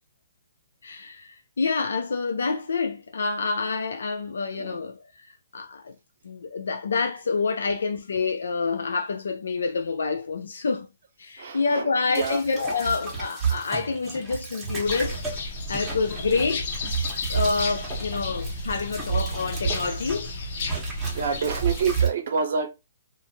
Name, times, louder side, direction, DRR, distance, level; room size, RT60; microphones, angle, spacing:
voice 1, 0.8-5.3 5.5-5.9 6.2-10.9 11.2-15.2 15.7-16.7 17.3-20.3, left 4 dB, 80° left, 0.4 m, -27 dB
voice 2, 4.5-4.9 11.4-11.9 12.2-12.4 21.1-22.7, right 5 dB, 60° right, 0.7 m, -27 dB
sound 1, 12.1-20.3 20.6-22.1, right 6 dB, 15° right, 1.2 m, -31 dB
sound 2, 14.8-22.1, left 3 dB, 50° left, 0.8 m, -33 dB
2.5 x 2.5 x 2.8 m
hypercardioid pair, 140°, 0 cm